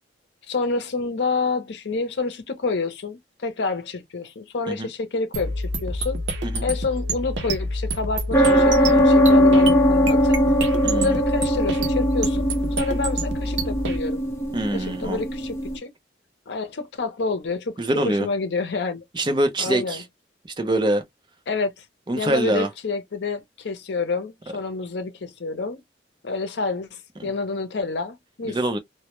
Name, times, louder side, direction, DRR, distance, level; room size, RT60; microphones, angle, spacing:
voice 1, 0.5-6.2 6.6-10.4 10.9-12.5 12.8-14.2 14.7-15.9 16.5-17.8 18.0-19.0 19.6-20.0 21.5-21.8 22.2-25.8 26.2-28.6, left 4 dB, 70° left, 0.6 m, -28 dB
sound 1, 5.3-14.0, right 1 dB, 75° right, 0.6 m, -28 dB
sound 2, 8.3-15.8, equal, 15° left, 0.7 m, -20 dB
voice 2, 10.8-11.1 14.5-15.2 17.8-18.3 19.1-20.0 20.6-21.0 22.1-22.7 27.2-27.3 28.5-28.8, right 1 dB, 25° right, 0.5 m, -24 dB
2.1 x 2.1 x 2.9 m
head